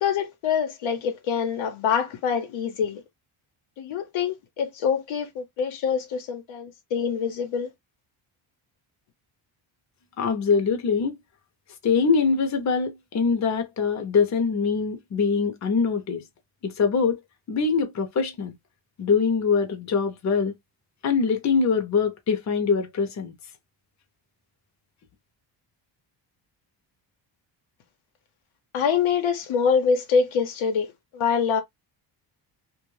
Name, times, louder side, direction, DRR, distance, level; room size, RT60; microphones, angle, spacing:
voice 1, 0.0-3.0 3.8-7.7 28.7-30.9 31.1-31.6, left 6 dB, 85° left, 0.9 m, -25 dB
voice 2, 10.2-11.2 11.8-16.2 16.6-17.2 17.5-18.6 19.0-20.5 21.0-23.3, left 5 dB, 35° left, 0.7 m, -23 dB
2.3 x 2.1 x 3.1 m
cardioid pair, 115°, 47 cm